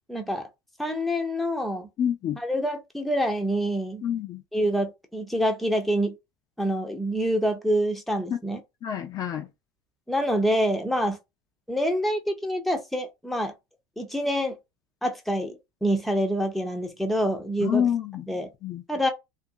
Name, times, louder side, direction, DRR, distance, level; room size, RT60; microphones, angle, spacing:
voice 1, 0.1-0.5 0.8-1.9 2.4-4.0 4.5-6.1 6.6-8.6 10.1-11.2 11.7-13.5 14.0-14.6 15.0-17.9 18.3-18.5 18.9-19.1, equal, ahead, 0.7 m, -26 dB
voice 2, 2.0-2.4 4.0-4.4 8.8-9.4 17.6-18.2 18.6-18.8, left 9 dB, 40° left, 0.5 m, -27 dB
2.5 x 2.5 x 2.7 m
hypercardioid pair, 95°, 10 cm